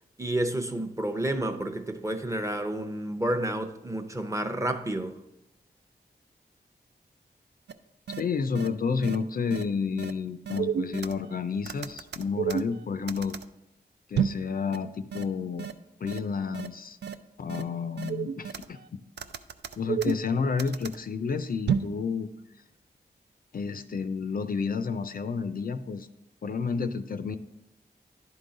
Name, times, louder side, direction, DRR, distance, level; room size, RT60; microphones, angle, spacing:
voice 1, 0.2-5.2, right 1 dB, 15° right, 0.6 m, -30 dB
sound 1, 7.7-7.8 8.1-8.2 8.5-8.7 9.0-9.2 9.5-9.6 10.0-10.1 10.5-11.3 11.7-13.4 14.1-14.4 14.7-14.8 15.1-15.2 15.6-15.7 16.1-16.2 16.5-16.7 17.0-17.1 17.5-17.6 18.0-18.8 19.2-21.0 21.7-21.9, right 7 dB, 80° right, 0.4 m, -30 dB
voice 2, 8.2-13.3 14.1-15.7 16.0-17.0 17.4-19.0 19.8-22.3 23.5-26.1 26.4-27.4, left 5 dB, 55° left, 0.4 m, -30 dB
11.0 x 3.8 x 3.9 m
wide cardioid pair, 80°, 18 cm